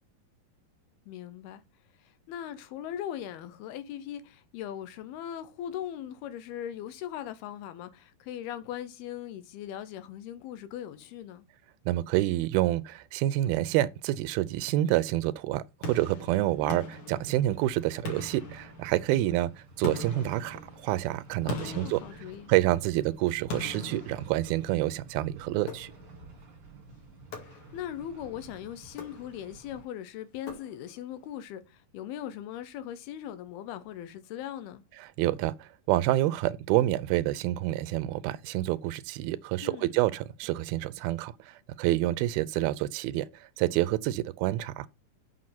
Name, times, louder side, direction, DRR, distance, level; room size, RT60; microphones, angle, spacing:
voice 1, 1.1-1.6 2.0-11.5 16.6-16.9 21.4-22.5 27.5-34.8 39.6-39.9, left 10 dB, 90° left, 3.0 m, -40 dB
voice 2, 11.9-19.5 19.8-22.0 22.5-25.9 35.0-44.9, right 15 dB, 85° right, 2.4 m, -28 dB
sound 1, 15.8-17.6 18.1-19.2 19.8-22.9 23.5-24.9 25.7-26.3 27.3-28.0 28.9-29.6 30.5-31.1, left 1 dB, 55° left, 3.2 m, -40 dB
sound 2, 17.4-29.9, right 3 dB, 40° right, 1.5 m, -52 dB
7.6 x 5.8 x 5.8 m
omnidirectional pair, 4.4 m